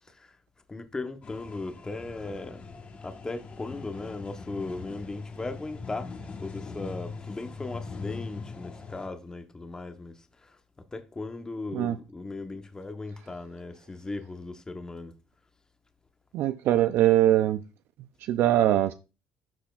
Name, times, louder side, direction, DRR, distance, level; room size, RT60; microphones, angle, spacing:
voice 1, 0.7-2.6 3.0-6.1 6.4-10.6 10.9-15.1, left 3 dB, 20° left, 0.9 m, -37 dB
sound 1, 1.2-9.1, left 4 dB, 35° left, 1.2 m, -41 dB
voice 2, 16.3-17.6 18.2-18.9, right 13 dB, 70° right, 0.4 m, -22 dB
12.0 x 4.2 x 2.4 m
cardioid pair, 105°, 4 cm